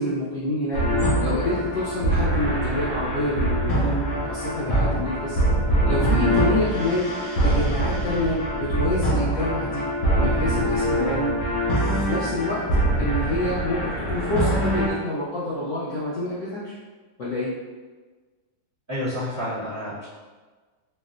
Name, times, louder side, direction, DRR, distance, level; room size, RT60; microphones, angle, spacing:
voice 1, 0.0-4.0 4.3-5.4 5.9-7.1 7.4-9.9 10.2-11.3 11.9-12.6 13.0-16.7 17.2-17.5, left 2 dB, 90° left, -9 dB, 0.6 m, -27 dB
sound 1, 0.7-14.9, right 1 dB, 70° left, 1.2 m, -23 dB
voice 2, 18.9-20.1, left 1 dB, 15° right, -11 dB, 0.7 m, -29 dB
4.5 x 2.1 x 2.4 m, 1.4 s
omnidirectional pair, 2.1 m